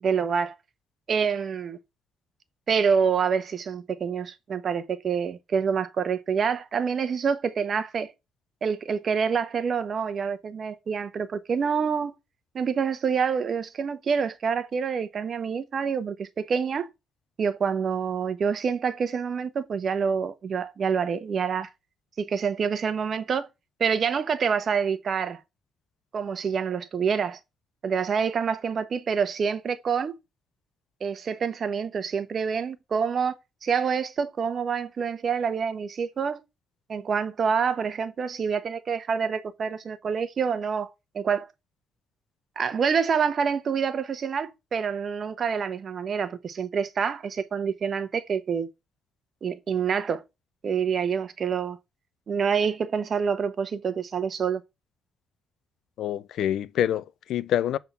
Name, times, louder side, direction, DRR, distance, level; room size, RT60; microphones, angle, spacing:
voice 1, 0.0-0.6 1.1-1.8 2.7-8.1 8.6-12.1 12.5-16.9 17.4-21.7 22.2-23.5 23.8-25.4 26.1-27.4 27.8-30.2 31.0-33.3 33.6-36.4 36.9-40.9 41.1-41.5 42.6-48.7 49.4-50.2 50.6-51.8 52.3-54.6, right 6 dB, 50° right, 0.9 m, -27 dB
voice 2, 56.0-57.8, left 11 dB, 75° left, 0.4 m, -26 dB
7.2 x 3.7 x 5.4 m
cardioid pair, 90°, 0 cm